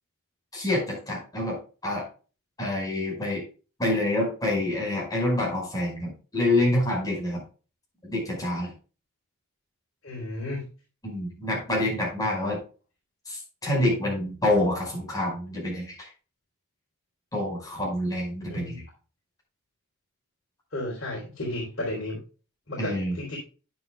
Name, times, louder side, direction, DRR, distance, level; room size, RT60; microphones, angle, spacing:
voice 1, 0.5-1.6 1.8-2.0 2.6-3.4 3.8-7.4 8.0-8.7 11.0-12.6 13.3-16.1 17.3-18.8 22.8-23.1, left 1 dB, 15° left, -2 dB, 5.1 m, -27 dB
voice 2, 10.0-10.7 18.5-18.8 20.7-22.2 22.7-23.4, left 1 dB, 60° left, -4 dB, 3.6 m, -33 dB
9.7 x 9.6 x 2.3 m, 0.35 s
head